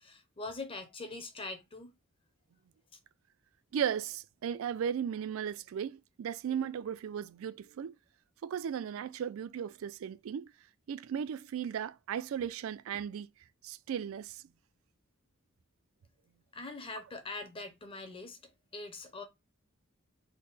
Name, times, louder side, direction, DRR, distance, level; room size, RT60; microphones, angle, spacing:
voice 1, 0.0-1.9 16.5-18.4 18.7-19.2, left 3 dB, 25° left, 0.6 m, -42 dB
voice 2, 3.7-7.9 8.4-10.5 10.9-13.3 13.6-14.4, right 8 dB, 70° right, 0.3 m, -36 dB
3.6 x 2.1 x 4.0 m
head